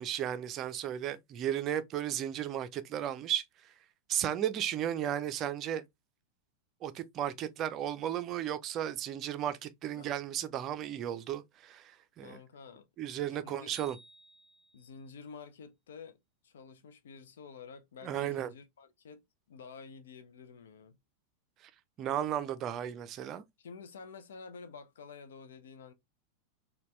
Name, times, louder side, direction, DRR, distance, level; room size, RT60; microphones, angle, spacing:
voice 1, 0.0-3.4 4.1-5.8 6.8-12.4 13.0-14.0 18.0-18.5 22.0-23.4, right 10 dB, 35° right, 0.5 m, -34 dB
voice 2, 12.2-12.9 13.4-13.8 14.7-16.2 16.4-19.2 19.5-21.0 23.6-25.9, left 5 dB, 60° left, 0.5 m, -50 dB
sound 1, 13.7-15.1, right 2 dB, 15° left, 0.8 m, -55 dB
4.1 x 2.3 x 3.0 m
figure-of-eight pair, 90°, 0 cm